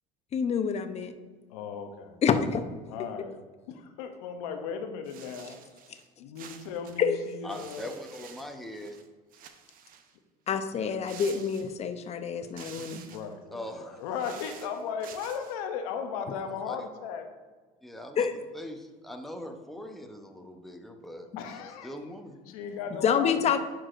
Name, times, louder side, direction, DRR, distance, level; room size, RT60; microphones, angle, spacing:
voice 1, 0.3-1.1 2.2-2.6 7.0-7.2 10.5-13.0 18.2-18.3 22.9-23.6, left 7 dB, 40° left, 8 dB, 0.7 m, -27 dB
voice 2, 1.5-2.2 2.9-3.4 3.7-5.6 6.2-8.0 13.1-17.3 21.4-21.9 22.5-23.4, left 6 dB, 90° left, 6 dB, 0.7 m, -36 dB
sound 1, 5.1-6.1 6.4-9.1 9.3-10.2 11.0-12.0 12.4-13.3 14.0-15.6, right 8 dB, 55° right, 0.7 m, -49 dB
voice 3, 7.4-9.0 13.5-14.0 16.6-16.8 17.8-18.3 18.5-21.3 21.8-22.4, equal, ahead, 3 dB, 0.8 m, -41 dB
11.0 x 4.7 x 2.5 m, 1.4 s
supercardioid pair, 95°, 17 cm